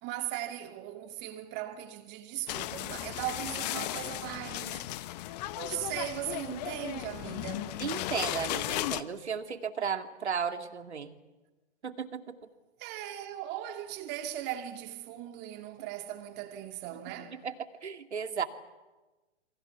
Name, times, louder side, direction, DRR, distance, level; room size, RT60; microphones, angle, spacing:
voice 1, 0.0-5.0 5.6-7.8 12.8-17.4, right 12 dB, 30° right, 2.5 m, -38 dB
sound 1, 2.5-9.0, left 15 dB, 35° left, 1.0 m, -36 dB
voice 2, 7.8-11.1 11.8-12.5 17.4-17.5 17.8-18.4, right 6 dB, 70° right, 2.4 m, -34 dB
28.5 x 24.0 x 7.2 m
figure-of-eight pair, 115°, 34 cm